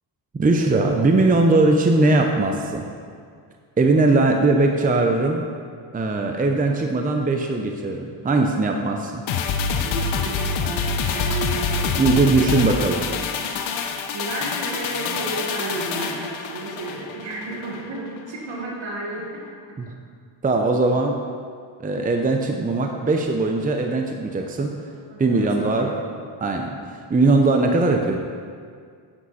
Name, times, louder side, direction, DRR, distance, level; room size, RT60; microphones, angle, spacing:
voice 1, 0.3-2.8 3.8-5.4 5.9-9.2 12.0-13.0 20.4-21.1 21.8-24.7 25.2-25.9 26.4-26.7 27.1-28.2, right 2 dB, 20° right, 3 dB, 0.7 m, -20 dB
sound 1, 9.3-17.8 18.2-18.3, left 5 dB, 85° left, 0.9 m, -26 dB
voice 2, 9.8-13.2 13.6-13.8 14.1-19.4 19.7-19.8 24.9-26.1, right 2 dB, 75° right, -2 dB, 2.1 m, -33 dB
9.5 x 8.9 x 4.2 m, 2.1 s
cardioid pair, 110°, 46 cm